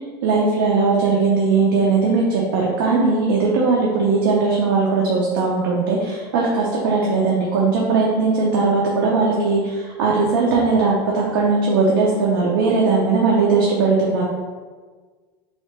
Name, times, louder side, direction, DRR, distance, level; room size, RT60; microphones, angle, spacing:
voice 1, 0.2-14.2, right 4 dB, 90° right, -4 dB, 0.6 m, -19 dB
3.2 x 2.9 x 3.2 m, 1.5 s
supercardioid pair, 125°, 12 cm